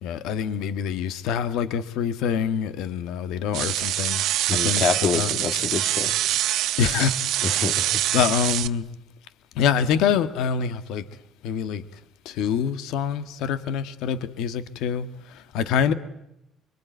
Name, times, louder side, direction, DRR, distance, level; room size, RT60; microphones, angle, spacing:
voice 1, 0.0-4.8 5.1-5.3 6.8-7.8 8.1-8.9 9.5-11.0 11.4-11.8 12.2-15.9, left 7 dB, 85° left, 1.5 m, -26 dB
sound 1, 3.5-8.7, right 13 dB, 75° right, 1.1 m, -25 dB
voice 2, 4.5-6.1 7.4-8.0, left 5 dB, 50° left, 2.3 m, -26 dB
25.0 x 24.5 x 9.3 m
cardioid pair, 135°, 0 cm